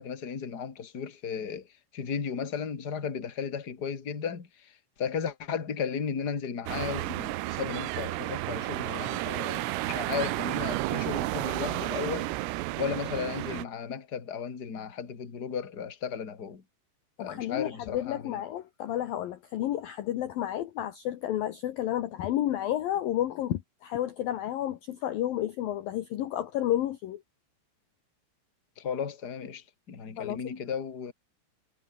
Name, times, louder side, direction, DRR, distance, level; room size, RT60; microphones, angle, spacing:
voice 1, 0.0-12.3 12.8-16.6 17.2-18.4 28.8-31.1, left 7 dB, 30° left, 2.1 m, -35 dB
sound 1, 6.7-13.6, right 18 dB, 90° right, 3.6 m, -32 dB
voice 2, 17.2-27.2 30.2-30.4, left 12 dB, 75° left, 2.1 m, -31 dB
omnidirectional pair, 6.0 m